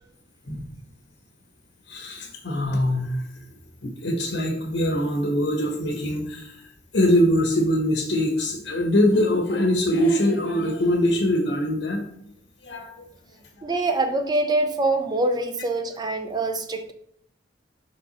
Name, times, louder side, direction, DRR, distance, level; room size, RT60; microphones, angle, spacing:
voice 1, 1.9-3.2 3.8-6.6 6.9-12.1 12.6-13.1, left 1 dB, 85° left, 0 dB, 1.3 m, -23 dB
voice 2, 13.6-16.9, right 2 dB, 25° right, 7 dB, 0.5 m, -24 dB
5.7 x 4.4 x 4.2 m, 0.71 s
head